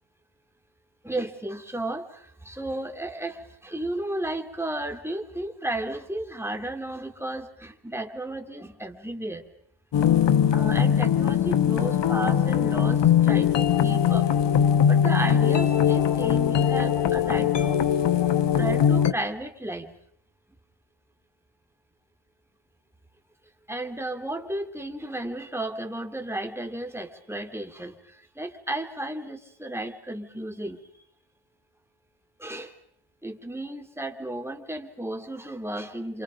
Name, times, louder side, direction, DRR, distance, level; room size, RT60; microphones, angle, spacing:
voice 1, 1.0-9.4 10.5-14.3 14.9-17.8 18.5-19.9 23.7-28.0 28.4-30.8 32.4-32.7 33.2-36.2, right 1 dB, 5° right, 4 dB, 3.2 m, -33 dB
sound 1, 9.9-19.1, left 9 dB, 60° left, 1.2 m, -21 dB
27.5 x 27.5 x 5.3 m, 0.65 s
cardioid pair, 65°, 48 cm